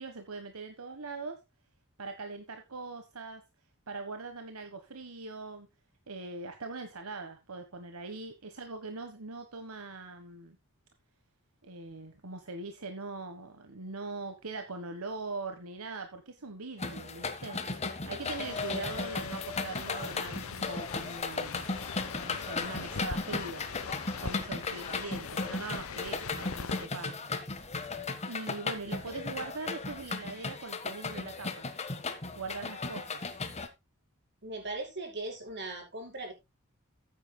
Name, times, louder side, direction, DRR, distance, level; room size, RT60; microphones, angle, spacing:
voice 1, 0.0-1.4 2.0-3.4 3.9-5.7 6.1-10.6 11.6-17.6 18.0-21.6 22.2-23.7 24.2-27.3 28.3-31.7 32.3-33.2, right 3 dB, 80° right, 7 dB, 1.4 m, -41 dB
sound 1, 16.8-33.7, left 3 dB, 30° left, 1.4 m, -36 dB
sound 2, 18.3-26.9, left 6 dB, 70° left, 0.8 m, -42 dB
voice 2, 34.4-36.3, right 2 dB, 50° right, 1 dB, 4.9 m, -39 dB
14.0 x 9.1 x 2.3 m, 0.23 s
head